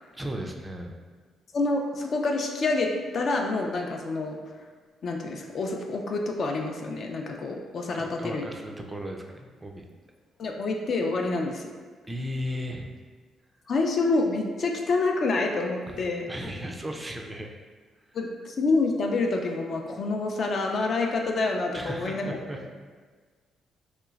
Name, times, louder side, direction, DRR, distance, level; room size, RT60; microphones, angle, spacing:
voice 1, 0.1-0.9 7.9-9.8 12.1-12.9 15.9-17.5 21.7-22.7, equal, 15° right, 2 dB, 0.3 m, -36 dB
voice 2, 1.5-4.4 5.0-8.4 10.4-11.7 13.7-16.3 18.1-22.4, left 3 dB, 55° left, 2 dB, 0.4 m, -27 dB
3.2 x 2.9 x 2.4 m, 1.5 s
cardioid pair, 90°, 0 cm